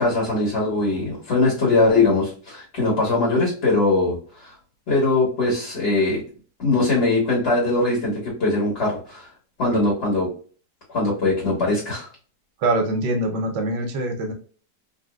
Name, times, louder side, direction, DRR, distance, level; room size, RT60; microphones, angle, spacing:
voice 1, 0.0-4.5 4.9-6.2 6.6-9.3 9.6-10.3 10.9-12.1, left 2 dB, 40° left, -5 dB, 1.5 m, -21 dB
voice 2, 12.6-14.3, right 2 dB, 90° right, 4 dB, 1.3 m, -24 dB
3.4 x 2.7 x 2.3 m, 0.41 s
omnidirectional pair, 1.8 m